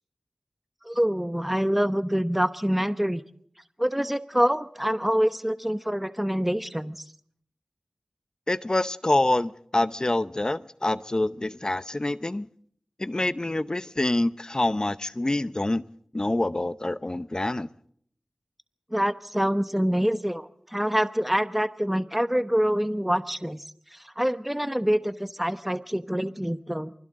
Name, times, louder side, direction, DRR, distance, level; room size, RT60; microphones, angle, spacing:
voice 1, 0.8-3.2 3.8-7.0 18.9-23.6 24.2-26.9, equal, 5° right, 11 dB, 1.0 m, -26 dB
voice 2, 8.5-12.5 13.0-15.8 16.1-17.7, left 2 dB, 40° left, 14 dB, 0.8 m, -26 dB
28.5 x 25.0 x 3.8 m, 0.63 s
wide cardioid pair, 55°, 2 cm